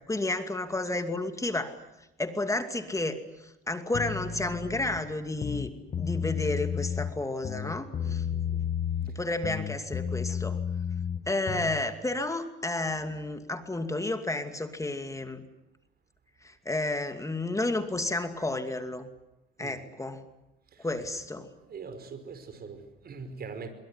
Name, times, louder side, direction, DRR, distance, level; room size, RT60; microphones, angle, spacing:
voice 1, 0.0-1.8 2.2-5.7 6.0-8.3 9.1-10.6 11.3-15.4 16.4-19.1 19.6-20.2 20.8-21.5, left 2 dB, 15° left, 8 dB, 2.5 m, -31 dB
sound 1, 3.9-5.0 5.3-7.1 7.4-9.2 9.4-11.8, left 7 dB, 40° left, 1.7 m, -32 dB
voice 2, 8.0-8.7 19.6-19.8 20.7-21.3 21.6-23.7, right 5 dB, 50° right, 9 dB, 5.3 m, -43 dB
24.0 x 23.0 x 9.8 m, 0.91 s
cardioid pair, 90°, 21 cm